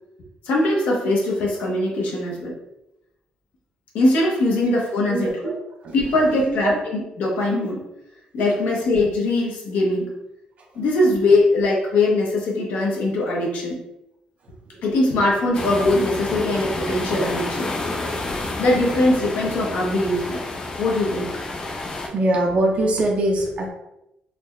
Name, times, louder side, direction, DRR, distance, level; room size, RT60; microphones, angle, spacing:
voice 1, 0.4-2.5 3.9-5.3 5.9-7.9 8.3-10.1 10.7-13.8 14.8-17.7 18.6-20.4 20.8-21.3, left 2 dB, 80° left, -3 dB, 0.8 m, -21 dB
voice 2, 5.1-5.6 5.8-6.0 6.5-6.8 14.7-15.1 18.5-18.6 21.1-21.2 22.1-23.7, right 1 dB, 50° right, 0 dB, 0.6 m, -23 dB
sound 1, 15.5-22.1, left 2 dB, 30° left, 0.6 m, -29 dB
4.0 x 2.2 x 3.1 m, 0.88 s
cardioid pair, 125°, 3 cm